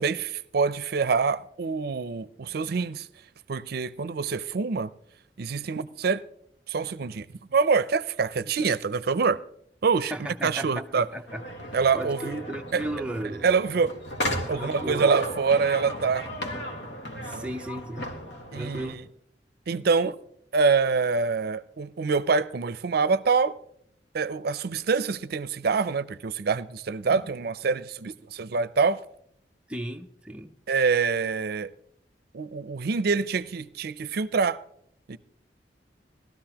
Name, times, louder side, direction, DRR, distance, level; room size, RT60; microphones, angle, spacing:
voice 1, 0.0-3.1 3.5-4.9 5.4-6.2 6.7-7.3 7.5-9.4 9.8-10.1 10.4-11.1 11.7-12.4 12.7-12.8 13.4-13.9 14.5-16.3 17.3-17.5 18.5-18.9 19.7-20.2 20.5-23.6 24.1-29.0 30.7-31.7 32.3-34.6 35.1-35.2, right 5 dB, 60° right, 0.5 m, -25 dB
voice 2, 10.1-11.4 11.9-13.5 14.6-15.1 17.2-18.1 18.5-19.0 29.7-30.5, right 1 dB, 5° right, 0.5 m, -35 dB
sound 1, 11.3-19.0, equal, 80° left, 1.8 m, -35 dB
18.0 x 13.0 x 2.9 m
head